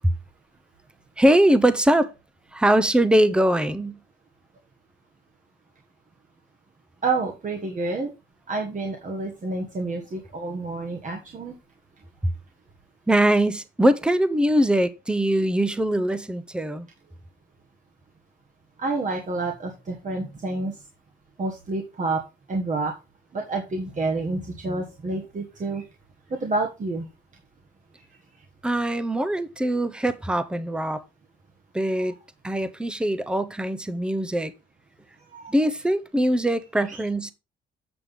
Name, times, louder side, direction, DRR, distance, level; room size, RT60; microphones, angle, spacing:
voice 1, 1.2-2.1 2.5-4.0 13.1-16.9 28.6-31.0 31.7-32.2 32.4-34.5 35.5-37.3, right 1 dB, 5° right, 0.7 m, -22 dB
voice 2, 7.0-8.1 8.5-11.5 18.8-20.8 21.4-22.2 22.5-22.9 23.3-25.8 26.3-27.1 32.0-32.1 35.3-35.5 36.9-37.0, right 3 dB, 40° right, 1.6 m, -29 dB
7.9 x 6.6 x 3.6 m
cardioid pair, 90°, 20 cm